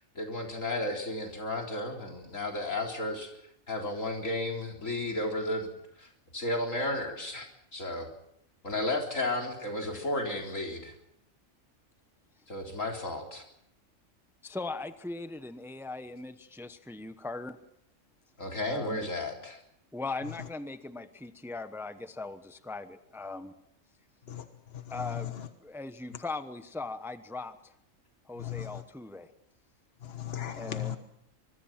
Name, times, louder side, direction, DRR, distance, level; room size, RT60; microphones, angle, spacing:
voice 1, 0.2-3.3 3.7-8.1 8.6-10.9 12.5-13.4 18.4-19.6, left 1 dB, 85° left, 1 dB, 4.2 m, -33 dB
voice 2, 14.4-17.6 18.7-19.1 19.9-23.5 24.9-25.3 25.6-27.7 28.3-29.3 30.6-31.0, left 3 dB, ahead, 10 dB, 1.0 m, -39 dB
voice 3, 24.3-25.5 28.4-28.8 30.0-31.0, left 11 dB, 50° left, 7 dB, 1.6 m, -38 dB
24.5 x 22.5 x 6.0 m, 0.75 s
omnidirectional pair, 1.3 m